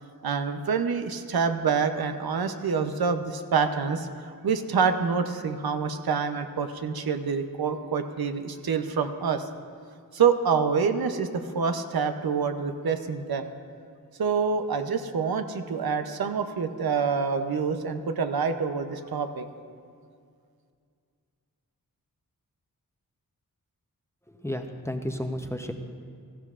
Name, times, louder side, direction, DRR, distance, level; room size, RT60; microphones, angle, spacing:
voice 1, 0.2-9.5 10.1-13.5 14.2-19.5, right 6 dB, 90° right, 8 dB, 0.7 m, -27 dB
voice 2, 24.3-25.7, left 1 dB, 10° left, 5 dB, 0.7 m, -32 dB
17.5 x 13.5 x 2.5 m, 2.2 s
wide cardioid pair, 85°, 36 cm